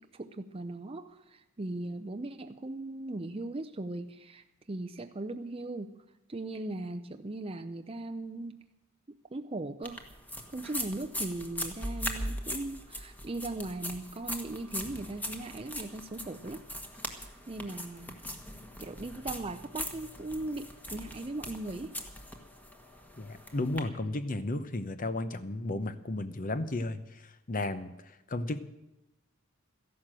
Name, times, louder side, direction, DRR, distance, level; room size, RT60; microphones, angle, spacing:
voice 1, 0.0-6.0 6.3-8.6 9.1-10.1 10.5-16.6 17.2-18.2 18.8-22.0, right 2 dB, 25° right, 7 dB, 0.6 m, -39 dB
sound 1, 9.8-23.8, equal, 10° left, 1.4 m, -40 dB
voice 2, 23.2-28.6, left 2 dB, 40° left, 12 dB, 0.8 m, -34 dB
14.0 x 11.5 x 7.6 m, 0.92 s
head